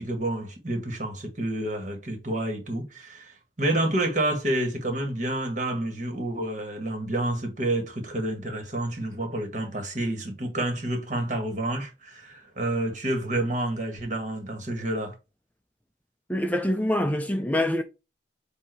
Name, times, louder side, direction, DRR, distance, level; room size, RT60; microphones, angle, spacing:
voice 1, 0.0-15.1, right 1 dB, 40° right, 1.9 m, -29 dB
voice 2, 16.3-17.8, left 1 dB, 10° left, 0.5 m, -25 dB
7.6 x 2.8 x 4.6 m
head